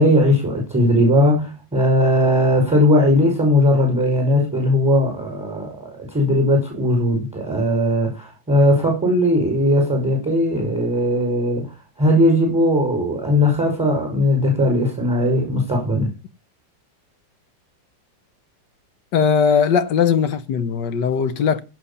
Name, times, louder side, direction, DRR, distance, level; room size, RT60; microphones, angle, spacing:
voice 1, 0.0-16.1, left 1 dB, 5° right, 5.5 m, -18 dB
voice 2, 19.1-21.6, left 6 dB, 65° left, 1.5 m, -19 dB
16.5 x 5.7 x 7.1 m
omnidirectional pair, 2.1 m